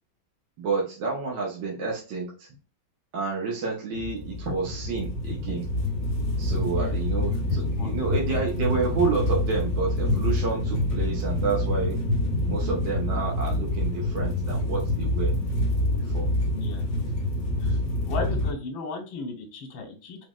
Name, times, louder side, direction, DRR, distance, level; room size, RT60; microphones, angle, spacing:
voice 1, 0.6-2.5 3.1-5.7 6.4-12.0 12.5-15.3 16.0-16.2, right 4 dB, 70° right, -3 dB, 1.7 m, -29 dB
sound 1, 3.9-18.5, left 1 dB, 45° left, 1.2 m, -27 dB
voice 2, 6.7-7.0 7.5-8.0 16.5-16.8 17.6-17.8 18.1-20.3, left 4 dB, 80° left, 3 dB, 1.8 m, -36 dB
5.0 x 3.3 x 2.3 m, 0.33 s
omnidirectional pair, 2.1 m